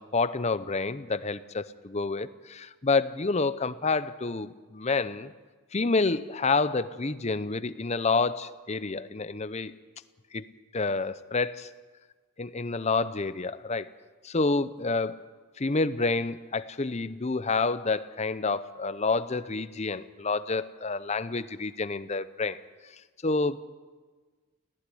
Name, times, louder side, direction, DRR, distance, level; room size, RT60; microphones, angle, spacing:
voice 1, 0.0-5.3 5.7-9.7 10.3-10.4 10.7-11.7 12.4-13.9 14.2-15.2 15.6-22.6 23.2-23.6, left 3 dB, 30° left, 14 dB, 0.6 m, -28 dB
18.0 x 16.0 x 10.0 m, 1.4 s
head